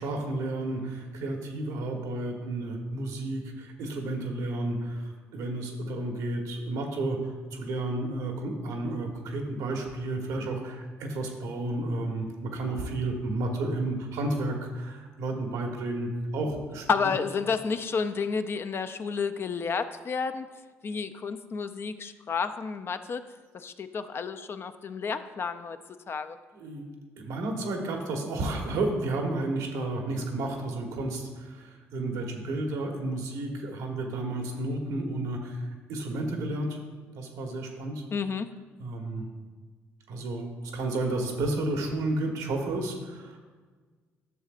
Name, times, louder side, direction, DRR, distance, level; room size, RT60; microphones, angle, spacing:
voice 1, 0.0-16.8 26.5-26.9 27.2-36.8 37.1-38.0 38.8-39.3 40.1-40.5 40.7-43.4, right 2 dB, 85° right, 2 dB, 1.2 m, -32 dB
voice 2, 16.9-20.5 20.8-23.2 23.5-25.8 26.1-26.4 38.1-38.5, left 5 dB, 45° left, 10 dB, 0.5 m, -31 dB
11.0 x 6.5 x 2.5 m, 1.4 s
cardioid pair, 80°, 6 cm